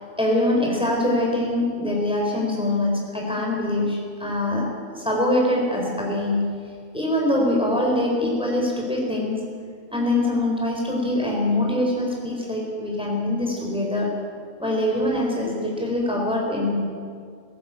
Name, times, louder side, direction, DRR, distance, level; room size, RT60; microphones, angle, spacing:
voice 1, 0.2-6.6 6.9-9.4 9.9-14.2 14.6-16.8, left 1 dB, 5° right, -1 dB, 4.2 m, -23 dB
18.5 x 17.5 x 8.5 m, 2.2 s
omnidirectional pair, 1.3 m